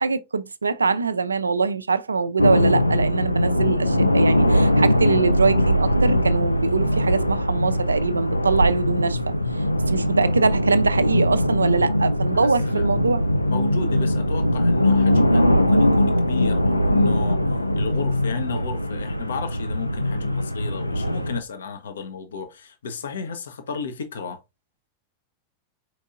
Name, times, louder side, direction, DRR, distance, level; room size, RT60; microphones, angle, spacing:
voice 1, 0.0-9.3 9.9-13.2, right 4 dB, 75° right, 0.4 m, -23 dB
sound 1, 2.4-21.4, left 1 dB, 85° left, 0.4 m, -21 dB
voice 2, 12.3-12.9 13.5-17.4 17.7-24.4, left 6 dB, 65° left, 0.8 m, -34 dB
4.6 x 4.4 x 2.5 m
figure-of-eight pair, 90°, 0 cm